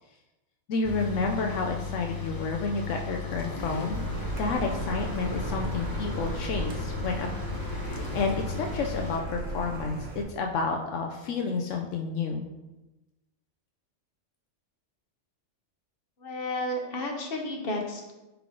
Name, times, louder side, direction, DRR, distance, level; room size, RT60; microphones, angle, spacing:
voice 1, 0.7-4.0 4.4-7.3 7.7-12.5, left 4 dB, 80° left, 2 dB, 1.0 m, -30 dB
sound 1, 0.8-9.2, left 4 dB, 25° left, 0.5 m, -36 dB
Car, 3.9-10.2, right 2 dB, 90° right, 1.4 m, -35 dB
voice 2, 16.2-18.1, left 1 dB, 50° left, 1 dB, 1.2 m, -32 dB
10.0 x 3.6 x 3.8 m, 1.0 s
omnidirectional pair, 1.3 m